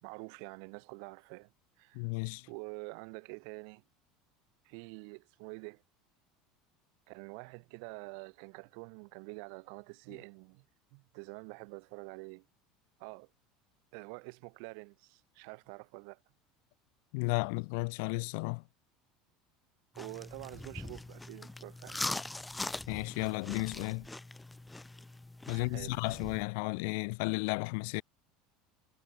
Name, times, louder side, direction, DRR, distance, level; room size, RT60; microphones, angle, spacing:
voice 1, 0.0-1.5 1.8-2.0 2.5-3.8 4.6-5.8 7.1-10.6 10.9-12.4 13.0-13.3 13.9-16.2 19.9-22.0 25.5-26.0, right 40 dB or more, 70° right, 2.4 m, -47 dB
voice 2, 1.9-2.4 17.1-18.6 22.9-24.1 25.5-28.0, left 33 dB, 75° left, 0.7 m, -33 dB
sound 1, 19.9-26.4, left 2 dB, 10° left, 2.0 m, -42 dB
supercardioid pair, 105°, 0 cm